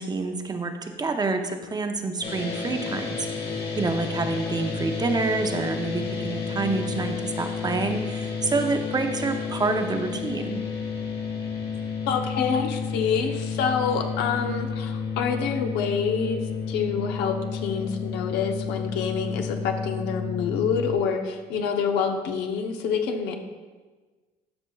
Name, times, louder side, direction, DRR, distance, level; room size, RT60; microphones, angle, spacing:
voice 1, 0.0-3.3 3.8-10.7, right 3 dB, 25° right, 6 dB, 0.6 m, -27 dB
sound 1, 2.2-20.9, left 5 dB, 35° left, 1.5 m, -31 dB
voice 2, 12.1-23.3, left 6 dB, 90° left, 5 dB, 0.8 m, -27 dB
12.0 x 5.7 x 2.3 m, 1.4 s
cardioid pair, 110°, 17 cm